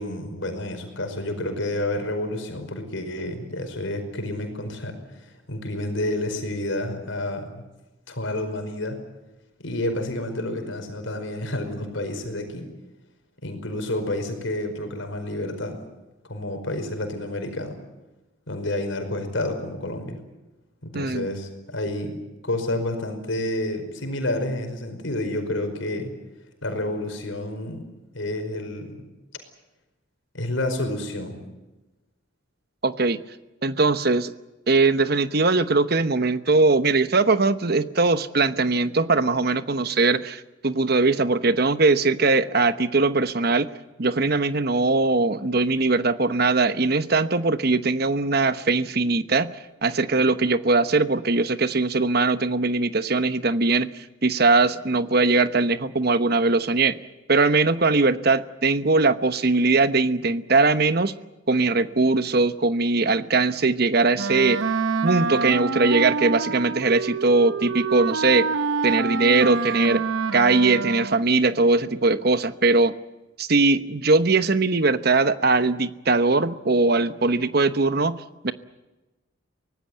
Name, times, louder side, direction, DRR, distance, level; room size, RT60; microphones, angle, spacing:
voice 1, 0.0-5.0 5.5-7.5 8.1-9.0 9.6-12.7 13.4-15.8 16.2-17.8 18.5-20.2 20.8-22.1 22.4-26.1 26.6-27.8 28.1-29.1 30.3-31.4, left 1 dB, 70° left, 6 dB, 5.1 m, -29 dB
voice 2, 20.9-21.3 32.8-33.2 33.6-34.3 34.7-43.7 44.0-49.5 49.8-53.9 54.2-57.0 57.3-61.1 61.5-64.6 65.0-68.5 68.8-70.0 70.3-72.9 73.4-78.5, right 3 dB, 50° right, 12 dB, 1.0 m, -21 dB
Wind instrument woodwind instrument, 64.2-71.3, right 4 dB, 80° right, 0.8 m, -27 dB
24.0 x 18.5 x 9.3 m, 1.1 s
head